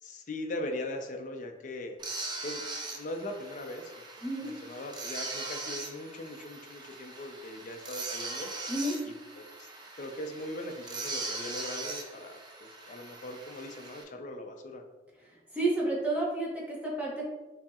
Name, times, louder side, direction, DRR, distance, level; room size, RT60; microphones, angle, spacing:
voice 1, 0.0-2.0 2.4-2.6 2.9-8.5 9.1-9.7 10.0-14.8, left 1 dB, 45° left, 3 dB, 0.5 m, -40 dB
sound 1, 2.0-14.0, right 3 dB, 25° right, 0.5 m, -40 dB
voice 2, 15.5-17.3, right 2 dB, 10° right, -5 dB, 1.0 m, -30 dB
6.9 x 2.8 x 2.4 m, 1.2 s
head